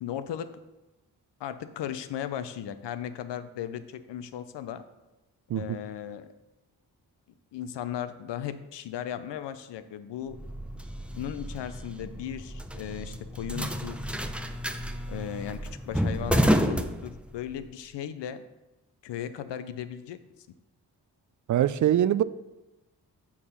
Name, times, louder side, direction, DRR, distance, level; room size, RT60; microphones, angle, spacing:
voice 1, 0.0-0.5 1.4-4.8 5.5-6.2 7.5-10.4 11.1-14.0 15.1-15.6 15.9-18.4 19.0-20.2, left 10 dB, 75° left, 11 dB, 0.7 m, -36 dB
sound 1, 10.3-17.6, equal, 5° right, 0.7 m, -30 dB
voice 2, 21.5-22.2, right 11 dB, 45° right, 16 dB, 0.4 m, -23 dB
7.2 x 4.7 x 5.6 m, 1.0 s
supercardioid pair, 45°, 42 cm